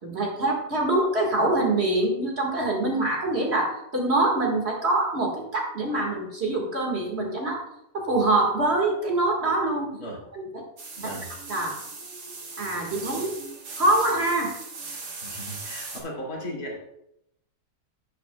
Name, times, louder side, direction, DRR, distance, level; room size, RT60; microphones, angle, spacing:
voice 1, 0.0-7.6 7.9-9.9 10.4-10.5 11.5-11.8 12.6-13.4 13.8-14.5, right 2 dB, 40° right, -1 dB, 1.9 m, -24 dB
sound 1, 10.8-16.0, right 3 dB, 80° right, 2.1 m, -39 dB
voice 2, 11.0-11.3 15.2-16.8, equal, 65° left, -4 dB, 2.9 m, -36 dB
11.5 x 8.7 x 2.3 m, 0.81 s
omnidirectional pair, 1.7 m